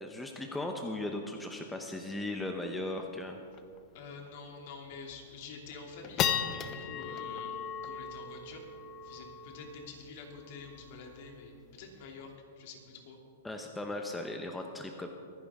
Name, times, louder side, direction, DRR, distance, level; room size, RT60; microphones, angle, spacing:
voice 1, 0.0-3.4 13.4-15.1, left 2 dB, 5° left, 3 dB, 0.9 m, -37 dB
sound 1, 2.7-2.8 3.0-3.1 3.5-3.8 4.3-4.4 4.9-5.3 5.7-12.3, left 8 dB, 30° left, 0.9 m, -37 dB
voice 2, 3.9-7.5 7.8-8.6 9.0-13.2, left 4 dB, 55° left, 1 dB, 2.7 m, -47 dB
24.5 x 10.0 x 3.7 m, 2.4 s
hypercardioid pair, 140°, 0 cm